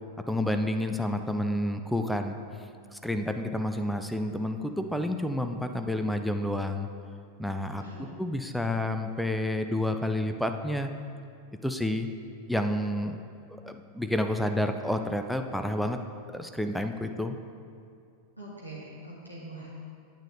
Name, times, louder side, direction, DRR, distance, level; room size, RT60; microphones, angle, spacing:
voice 1, 0.3-2.4 2.9-6.9 7.4-7.8 8.2-10.9 11.6-12.1 12.5-13.2 13.5-16.0 16.3-17.4, left 1 dB, ahead, 6 dB, 0.4 m, -29 dB
voice 2, 7.8-8.2 18.4-19.7, right 2 dB, 90° right, -7 dB, 1.5 m, -43 dB
8.9 x 8.8 x 2.8 m, 2.3 s
figure-of-eight pair, 90°, 0 cm